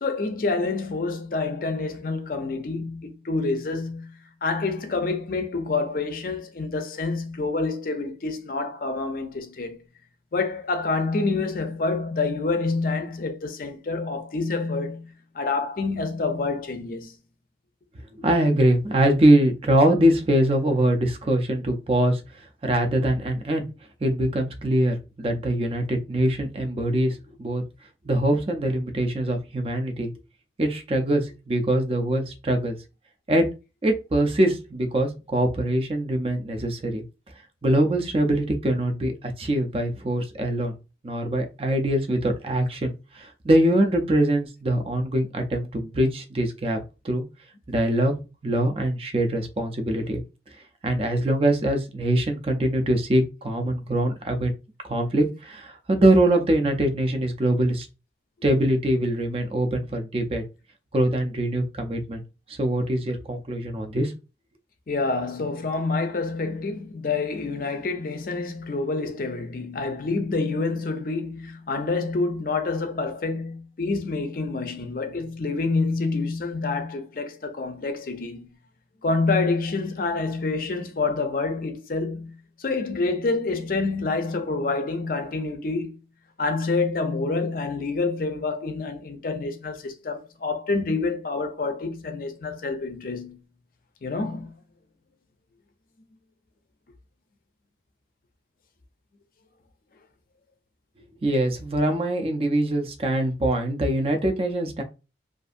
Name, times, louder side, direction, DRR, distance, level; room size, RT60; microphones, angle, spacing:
voice 1, 0.0-9.8 10.3-15.1 15.3-17.1 64.9-78.5 79.0-85.9 86.4-93.4 94.0-94.5, left 3 dB, 50° left, 0.5 m, -27 dB
voice 2, 18.2-22.2 22.6-23.7 24.0-27.6 28.1-30.1 30.6-32.8 33.3-33.4 33.8-37.0 37.6-39.1 39.4-40.7 41.0-46.8 47.0-47.2 47.7-48.1 48.4-50.2 50.8-54.5 54.8-57.9 58.4-60.4 60.9-62.2 62.6-64.1 101.2-104.8, right 1 dB, 30° right, 0.4 m, -23 dB
2.6 x 2.5 x 2.4 m
head